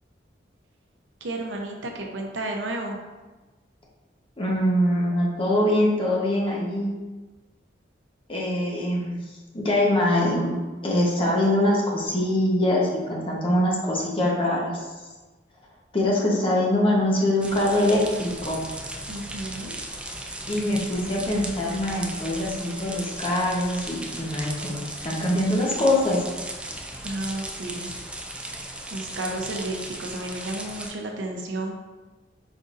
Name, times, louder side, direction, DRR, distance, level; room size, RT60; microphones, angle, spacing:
voice 1, 1.2-3.0 19.1-19.8 27.0-27.9 28.9-31.8, right 2 dB, 85° right, 2 dB, 0.7 m, -32 dB
voice 2, 4.4-6.9 8.3-9.2 9.5-10.5 10.8-14.9 15.9-18.6 20.5-26.2, left 1 dB, 30° left, -3 dB, 1.0 m, -23 dB
sound 1, 17.4-30.9, right 1 dB, 5° right, 0.3 m, -36 dB
5.1 x 3.9 x 2.5 m, 1.2 s
head